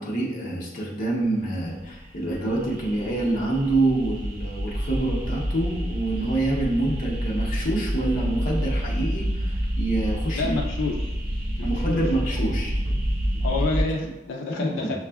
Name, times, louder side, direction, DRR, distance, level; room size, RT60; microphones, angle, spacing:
voice 1, 0.0-10.5 11.6-12.7 13.6-13.7 14.0-14.1 14.4-15.0, right 2 dB, 45° left, -4 dB, 0.7 m, -26 dB
sound 1, 1.8-13.8, equal, 50° right, 0.6 m, -28 dB
voice 2, 10.3-11.1 11.6-12.0 12.4-12.5 13.4-15.0, left 3 dB, 80° left, 0 dB, 0.4 m, -29 dB
5.9 x 2.4 x 2.2 m, 1.0 s
head